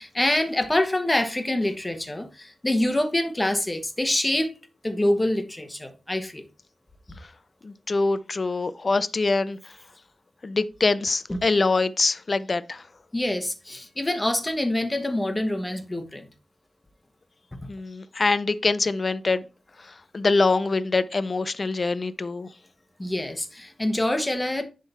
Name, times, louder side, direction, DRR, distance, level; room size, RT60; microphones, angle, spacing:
voice 1, 0.0-4.5 4.8-6.4 11.3-11.4 13.1-16.3 23.0-24.6, left 1 dB, 15° left, 1.2 m, -25 dB
voice 2, 7.6-9.6 10.4-12.8 17.7-19.4 19.8-22.5, left 3 dB, 40° left, 0.5 m, -24 dB
10.5 x 3.8 x 4.2 m
wide cardioid pair, 120°, 0 cm